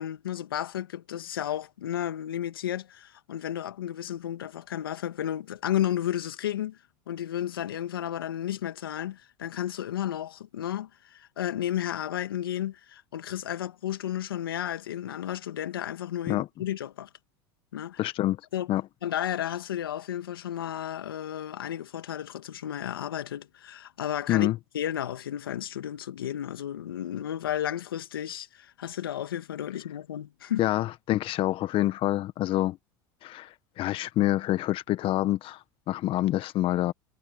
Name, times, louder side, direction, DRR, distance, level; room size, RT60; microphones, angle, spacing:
voice 1, 0.0-6.8 7.1-17.1 17.7-18.0 18.5-18.7 19.0-24.5 24.7-30.6, left 11 dB, 90° left, 1.8 m, -33 dB
voice 2, 18.0-18.4 18.7-18.8 24.3-24.6 30.6-32.8 33.2-36.9, left 15 dB, 50° left, 1.4 m, -27 dB
hypercardioid pair, 85°, 12 cm